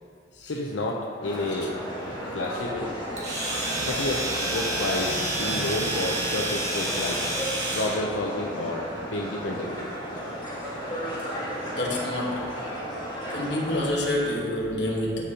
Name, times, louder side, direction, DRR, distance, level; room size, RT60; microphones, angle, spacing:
voice 1, 0.4-1.7 2.3-2.9 3.8-7.3 7.7-9.8, left 2 dB, 85° left, -1 dB, 0.6 m, -30 dB
sound 1, 1.2-13.9, equal, 25° left, 1.7 m, -34 dB
Domestic sounds home sounds, 3.2-8.0, right 1 dB, 40° right, 1.5 m, -29 dB
voice 2, 5.2-5.7 6.4-6.6 6.9-7.3 10.8-10.9 11.7-12.5 13.3-15.2, left 1 dB, 65° left, -2 dB, 1.3 m, -29 dB
13.0 x 5.0 x 2.9 m, 2.4 s
head